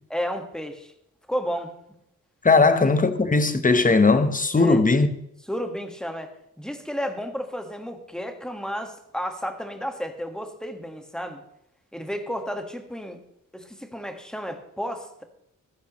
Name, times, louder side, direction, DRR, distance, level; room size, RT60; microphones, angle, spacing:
voice 1, 0.1-0.9 1.3-1.7 2.6-2.7 4.6-4.8 5.5-6.3 6.6-11.4 11.9-13.2 13.5-15.2, equal, ahead, 1.6 m, -32 dB
voice 2, 2.4-5.1, left 3 dB, 25° left, 1.0 m, -18 dB
14.5 x 14.0 x 3.1 m
wide cardioid pair, 110°, 33 cm